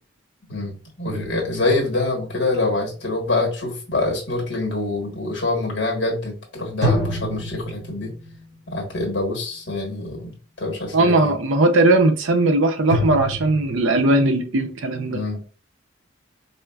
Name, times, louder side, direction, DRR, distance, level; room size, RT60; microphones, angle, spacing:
voice 1, 0.5-8.1 8.7-11.4 15.1-15.4, left 2 dB, 55° left, 1.3 m, -25 dB
sound 1, 1.1-2.3 6.8-8.4 12.9-14.0, equal, 40° right, 1.6 m, -27 dB
voice 2, 10.9-15.2, right 2 dB, 75° right, 0.6 m, -18 dB
4.3 x 2.4 x 2.3 m
head